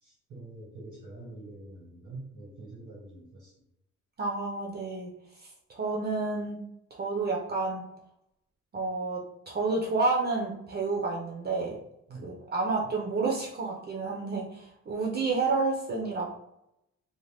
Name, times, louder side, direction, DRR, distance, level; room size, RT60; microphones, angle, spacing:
voice 1, 0.0-3.5 12.1-12.4, right 2 dB, 90° right, -4 dB, 1.2 m, -45 dB
voice 2, 4.2-5.1 5.7-6.6 6.9-7.8 8.7-11.7 12.2-16.4, right 3 dB, 35° right, -1 dB, 0.5 m, -30 dB
2.5 x 2.1 x 3.2 m, 0.83 s
wide cardioid pair, 150°, 29 cm